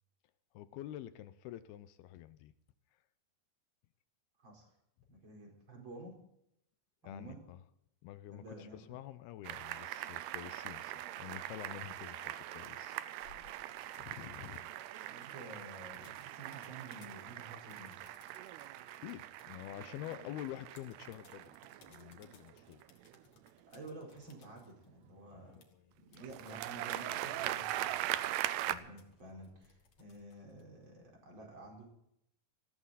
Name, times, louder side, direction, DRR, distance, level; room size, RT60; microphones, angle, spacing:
voice 1, 0.5-2.5 2.9-3.0 7.0-7.6 8.0-13.0 14.0-14.7 16.0-16.1 19.0-21.6 21.8-22.8 25.3-25.6 28.7-28.8, left 13 dB, 80° left, 13 dB, 2.6 m, -48 dB
voice 2, 4.4-4.7 5.1-6.2 7.0-7.4 8.3-9.0 15.1-18.0 23.7-25.6 26.0-28.2 28.6-31.9, right 2 dB, 30° right, 0 dB, 5.0 m, -51 dB
sound 1, 9.4-23.5 26.2-28.8, right 14 dB, 85° right, 2.8 m, -41 dB
sound 2, 13.2-31.2, left 6 dB, 50° left, 2.7 m, -67 dB
18.5 x 15.5 x 4.1 m, 0.78 s
omnidirectional pair, 4.6 m